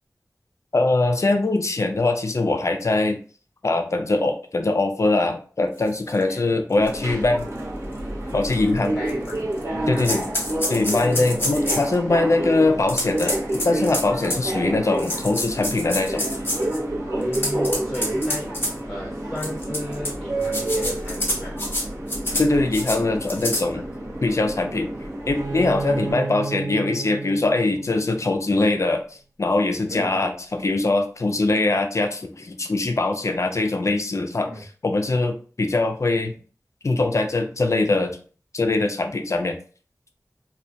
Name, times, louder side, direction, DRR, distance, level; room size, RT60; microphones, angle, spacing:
voice 1, 0.7-3.2 3.6-7.5 8.3-8.9 9.9-10.3 10.7-13.4 13.6-16.3 22.4-23.9 24.2-24.9 25.3-29.0 29.4-36.4 36.8-38.2 38.5-39.6, left 2 dB, 55° left, 6 dB, 0.4 m, -22 dB
sound 1, 6.1-6.2 6.9-7.0 7.4-7.5 8.4-8.5 9.1-9.6 10.0-11.9 12.9-14.5 15.0-16.8 17.2-18.7 19.4-20.1 20.4-21.8 22.1-22.5 22.7-23.0 23.3-23.6, left 1 dB, 35° left, 0.9 m, -27 dB
voice 2, 6.1-6.6 8.8-10.2 10.7-11.8 14.3-14.7 17.2-18.6 18.8-21.9 23.7-23.9 25.8-26.3 29.9-30.2 34.4-34.6, equal, 10° left, -4 dB, 1.0 m, -35 dB
Subway metro underground, 6.8-26.1, right 1 dB, 50° right, 0.8 m, -29 dB
Bowed string instrument, 25.3-28.9, right 4 dB, 90° right, 0.6 m, -33 dB
2.2 x 2.1 x 2.6 m, 0.41 s
wide cardioid pair, 45°, 6 cm